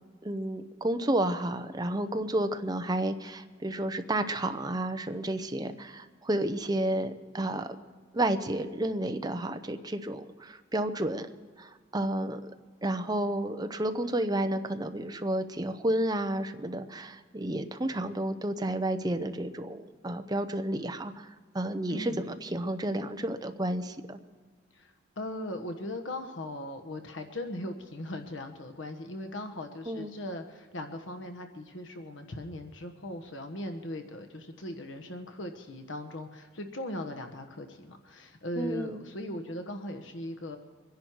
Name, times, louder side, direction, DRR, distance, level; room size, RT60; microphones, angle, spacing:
voice 1, 0.2-7.8 8.1-11.3 11.6-12.5 12.8-21.3 21.5-24.2 29.9-30.1 38.6-39.0, right 1 dB, 20° right, 8 dB, 0.8 m, -31 dB
voice 2, 21.9-22.2 24.7-40.6, left 1 dB, 85° left, 7 dB, 1.3 m, -39 dB
24.5 x 10.5 x 4.7 m, 1.5 s
head